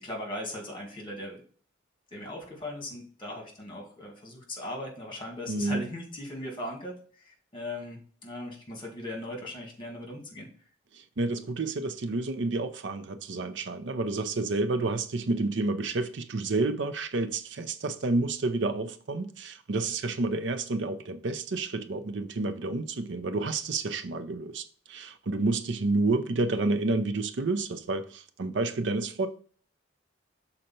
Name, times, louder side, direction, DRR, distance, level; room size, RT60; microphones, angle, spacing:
voice 1, 0.0-1.4 2.1-7.0 7.2-10.5, left 1 dB, 25° left, 2.0 m, -38 dB
voice 2, 5.5-5.8 10.9-29.3, right 3 dB, 70° right, 0.6 m, -29 dB
6.5 x 4.1 x 4.3 m
head